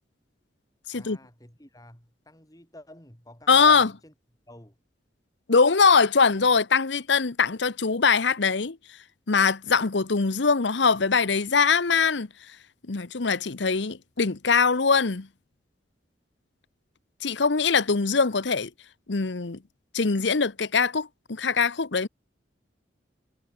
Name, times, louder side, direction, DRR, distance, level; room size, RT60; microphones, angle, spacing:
voice 1, 0.9-4.1 4.5-4.8, left 1 dB, 20° left, 5.6 m, -50 dB
voice 2, 3.5-3.9 5.5-8.8 9.3-12.3 12.9-15.3 17.2-18.7 19.1-19.6 19.9-22.1, left 5 dB, 70° left, 0.9 m, -22 dB
head